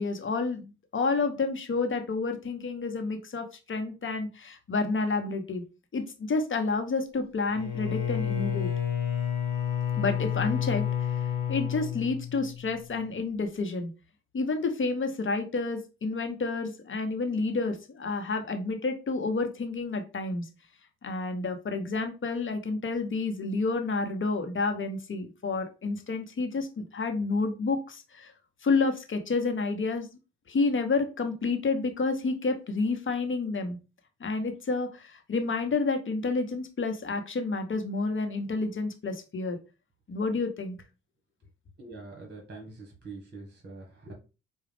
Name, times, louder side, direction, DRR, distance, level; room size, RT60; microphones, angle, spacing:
voice 1, 0.0-5.6 5.9-8.7 10.0-11.1 11.5-13.9 14.3-20.5 21.0-28.3 28.6-30.1 30.5-33.8 34.2-39.6 40.1-40.8, left 3 dB, 40° left, 6 dB, 1.0 m, -29 dB
Bowed string instrument, 7.5-12.8, left 9 dB, 70° left, 1.3 m, -30 dB
voice 2, 41.8-44.1, right 3 dB, 35° right, 0 dB, 1.6 m, -44 dB
4.7 x 2.4 x 3.4 m, 0.30 s
supercardioid pair, 50°, 31 cm